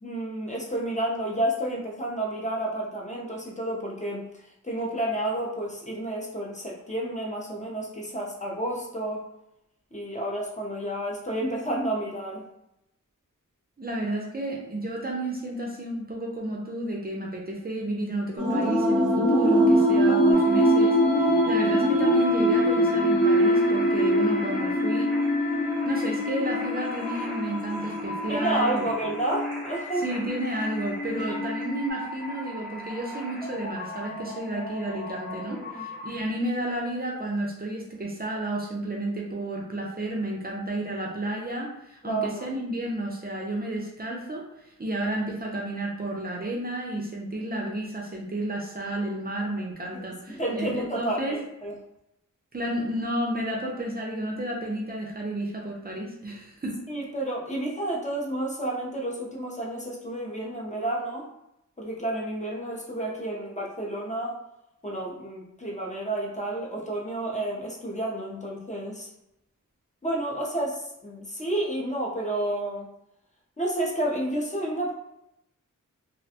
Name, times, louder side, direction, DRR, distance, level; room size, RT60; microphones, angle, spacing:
voice 1, 0.0-4.2 4.6-9.2 9.9-12.4 28.3-30.1 31.2-31.4 35.5-35.8 42.0-42.5 49.9-50.0 50.3-51.7 56.9-61.3 61.8-64.4 64.8-69.1 70.0-72.9 73.6-74.9, right 1 dB, 25° left, -3 dB, 0.5 m, -30 dB
voice 2, 13.8-25.1 25.9-28.9 30.0-51.4 52.5-56.8, right 1 dB, 30° right, -2 dB, 0.5 m, -31 dB
sound 1, 18.4-31.9, equal, 75° left, 1.2 m, -23 dB
sound 2, 20.3-36.2, left 1 dB, ahead, 0.9 m, -38 dB
2.4 x 2.2 x 2.7 m, 0.84 s
wide cardioid pair, 95°, 32 cm